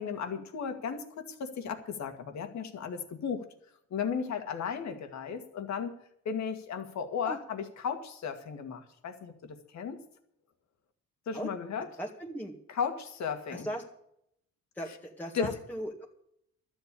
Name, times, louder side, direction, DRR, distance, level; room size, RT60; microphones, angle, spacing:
voice 1, 0.0-3.4 3.9-5.9 6.3-10.0 11.3-11.9 12.7-13.7 15.3-15.5, left 6 dB, 65° left, 7 dB, 2.1 m, -35 dB
voice 2, 12.0-12.6 13.5-13.8 14.8-16.1, right 1 dB, 5° left, -1 dB, 1.9 m, -37 dB
12.0 x 8.1 x 8.4 m, 0.73 s
cardioid pair, 90°, 30 cm